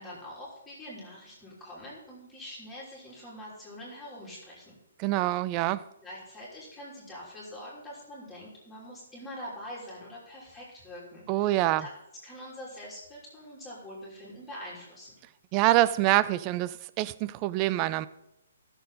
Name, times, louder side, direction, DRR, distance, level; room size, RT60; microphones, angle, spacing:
voice 1, 0.0-4.7 6.0-11.9 12.2-15.1, equal, 5° left, 3.2 m, -44 dB
voice 2, 5.0-5.8 11.3-11.9 15.5-18.1, right 16 dB, 20° right, 0.3 m, -25 dB
15.0 x 6.9 x 4.1 m
hypercardioid pair, 170°, 0 cm